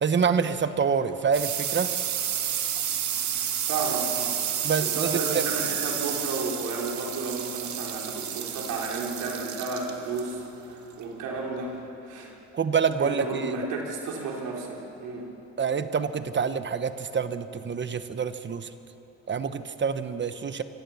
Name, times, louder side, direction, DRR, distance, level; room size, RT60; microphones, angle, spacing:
voice 1, 0.0-1.9 4.6-5.4 12.5-13.6 15.6-18.7 19.3-20.6, right 6 dB, 40° right, 11 dB, 1.1 m, -27 dB
sound 1, 0.6-11.9, right 9 dB, 70° right, 1.8 m, -31 dB
voice 2, 3.7-4.4 4.8-11.7 12.1-12.3 13.0-15.3, right 3 dB, 90° right, -1 dB, 3.8 m, -32 dB
26.0 x 15.5 x 7.2 m, 2.9 s
cardioid pair, 90°, 30 cm